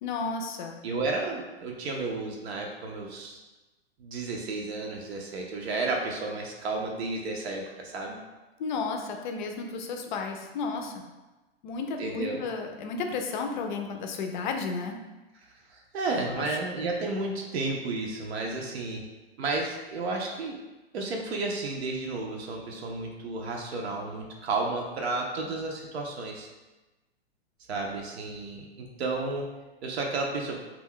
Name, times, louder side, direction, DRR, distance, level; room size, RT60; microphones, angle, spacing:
voice 1, 0.0-0.8 8.6-11.1 11.6-15.0 16.1-16.6, left 4 dB, 50° left, 4 dB, 0.4 m, -33 dB
voice 2, 0.8-3.4 4.0-8.2 12.0-12.4 15.7-19.0 19.4-20.6 20.9-26.5 27.7-29.5 29.8-30.6, right 3 dB, 75° right, 0 dB, 0.6 m, -32 dB
2.3 x 2.2 x 3.6 m, 1.1 s
hypercardioid pair, 140°, 32 cm